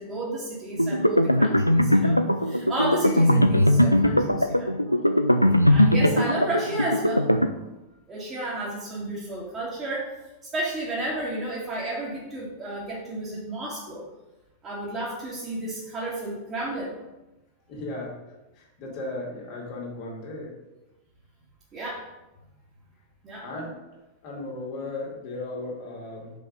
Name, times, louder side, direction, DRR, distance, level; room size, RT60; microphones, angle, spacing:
voice 1, 0.0-5.0 5.7-7.3 8.1-10.1 10.5-14.0 14.6-17.0 21.7-22.1 23.2-23.5, right 1 dB, 25° right, -7 dB, 2.1 m, -32 dB
sound 1, 0.8-7.5, left 1 dB, 90° left, 0.3 m, -20 dB
voice 2, 17.7-18.2 18.6-20.5 23.4-23.7 24.2-26.3, left 2 dB, 45° left, -3 dB, 2.4 m, -36 dB
5.5 x 5.1 x 5.3 m, 1.0 s
figure-of-eight pair, 90°, 0 cm